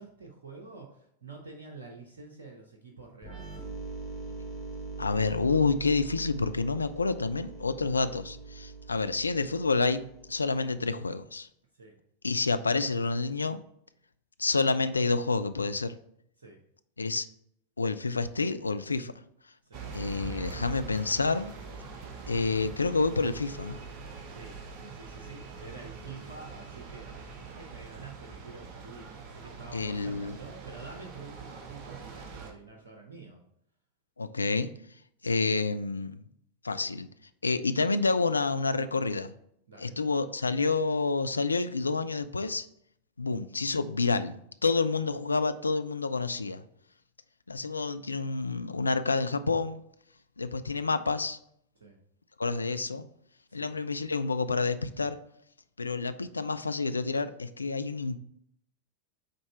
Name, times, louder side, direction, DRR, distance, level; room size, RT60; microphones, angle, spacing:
voice 1, 0.0-3.6 11.7-12.0 16.4-16.6 19.6-19.9 24.3-33.4 36.7-36.9 39.7-40.0 51.8-52.0 53.5-53.7, right 3 dB, 65° right, 1 dB, 0.8 m, -48 dB
sound 1, 3.2-10.8, right 4 dB, 5° right, 1.7 m, -42 dB
voice 2, 5.0-10.0 10.3-11.5 12.2-13.6 14.4-15.9 17.0-17.3 17.8-19.1 19.9-21.5 22.3-23.8 29.7-30.4 34.2-34.7 35.2-36.2 36.6-37.1 37.4-39.3 39.8-42.7 43.2-46.6 47.5-49.8 50.4-51.4 52.4-53.1 53.5-55.2 55.8-58.2, left 4 dB, 80° left, 11 dB, 0.3 m, -28 dB
sound 2, 19.7-32.5, right 5 dB, 40° right, 0.9 m, -44 dB
5.1 x 4.2 x 4.4 m, 0.71 s
figure-of-eight pair, 90°, 0 cm